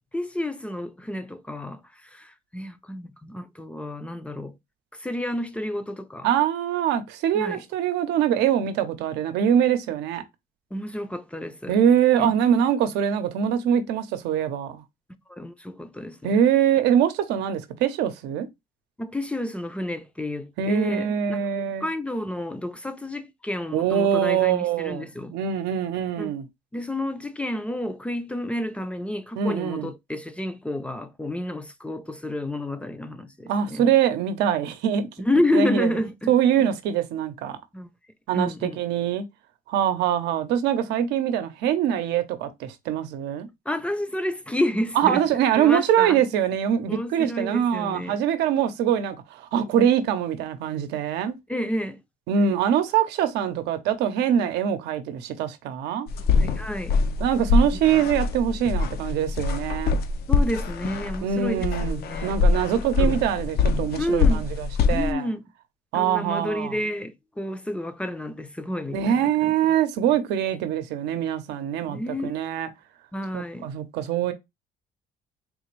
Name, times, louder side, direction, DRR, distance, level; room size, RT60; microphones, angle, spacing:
voice 1, 0.1-4.6 5.0-6.3 7.3-7.6 10.7-11.8 15.3-16.4 19.0-25.3 26.2-26.3 26.7-33.9 35.2-36.3 36.6-36.7 37.7-37.9 38.3-38.8 43.7-46.2 46.9-48.2 51.5-52.0 56.4-57.0 60.3-62.4 62.7-63.1 64.0-64.5 64.9-65.5 65.9-69.5 71.9-72.3 73.1-73.7, left 1 dB, 5° left, 0.4 m, -30 dB
voice 2, 6.2-10.2 11.7-14.8 16.2-18.5 20.6-21.9 23.7-26.4 29.4-29.9 33.5-35.1 35.5-35.9 36.3-37.6 38.3-39.2 39.7-43.5 45.0-51.3 52.3-56.1 57.2-60.0 61.2-65.3 65.9-66.8 68.9-72.7 73.3-74.3, right 9 dB, 85° right, 0.7 m, -23 dB
sound 1, 56.1-65.1, left 4 dB, 70° left, 0.5 m, -24 dB
3.7 x 2.5 x 3.1 m
cardioid pair, 110°, 17 cm